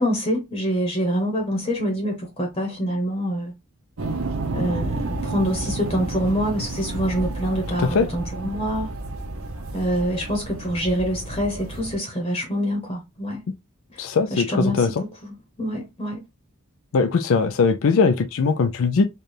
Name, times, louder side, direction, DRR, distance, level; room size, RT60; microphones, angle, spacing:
voice 1, 0.0-3.5 4.5-8.9 9.7-13.4 13.9-14.0 14.3-16.2, equal, 25° left, 0.9 m, -26 dB
sound 1, 4.0-12.0, right 2 dB, 85° right, 0.7 m, -31 dB
voice 2, 14.0-14.9 16.9-19.1, left 4 dB, 70° left, 0.4 m, -20 dB
4.4 x 2.3 x 3.2 m
head